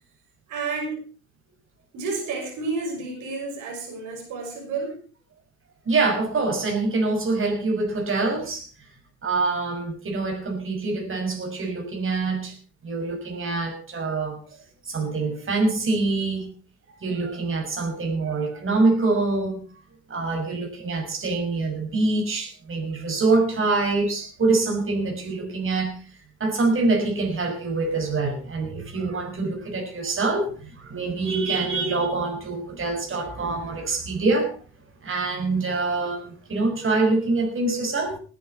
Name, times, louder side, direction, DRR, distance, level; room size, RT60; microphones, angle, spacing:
voice 1, 0.5-1.0 1.9-4.9, right 4 dB, 90° right, 6.0 m, -30 dB
voice 2, 5.8-8.9 9.2-12.6 12.8-16.5 17.0-19.6 20.1-34.5 35.0-38.2, right 3 dB, 45° right, 6.1 m, -25 dB
20.5 x 10.5 x 4.3 m
cardioid pair, 90°, 30 cm